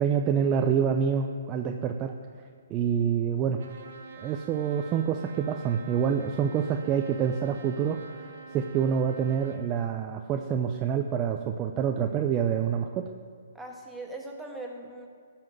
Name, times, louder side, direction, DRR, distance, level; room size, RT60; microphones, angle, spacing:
voice 1, 0.0-2.1 2.7-3.6 4.2-13.1, right 7 dB, 20° right, 4 dB, 0.6 m, -27 dB
Trumpet, 3.6-9.6, right 5 dB, 65° right, 1.6 m, -46 dB
voice 2, 13.5-15.1, right 2 dB, 5° right, -1 dB, 1.5 m, -40 dB
14.0 x 5.9 x 7.5 m, 2.2 s
hypercardioid pair, 155°, 0 cm